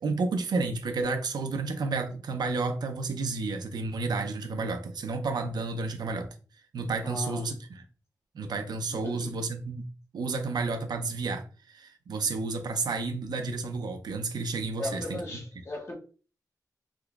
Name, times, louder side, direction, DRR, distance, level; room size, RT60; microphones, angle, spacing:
voice 1, 0.0-6.3 6.7-7.5 8.3-9.9 10.1-15.2, right 3 dB, 85° right, 0.5 m, -31 dB
voice 2, 7.0-7.5 8.9-9.4 14.8-16.0, left 2 dB, 40° left, 1.0 m, -37 dB
3.5 x 2.9 x 2.3 m
wide cardioid pair, 85°, 7 cm